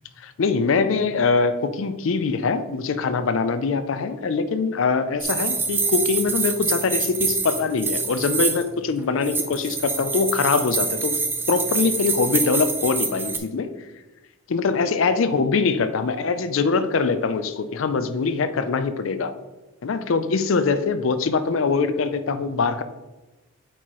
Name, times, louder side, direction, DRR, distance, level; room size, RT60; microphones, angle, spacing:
voice 1, 0.2-11.2 11.5-13.7 14.5-19.3 19.8-22.8, left 4 dB, 70° left, 11 dB, 0.4 m, -23 dB
sound 1, 5.2-8.7 9.2-13.4, right 4 dB, 10° right, 0.4 m, -26 dB
8.0 x 4.5 x 3.0 m, 1.1 s
head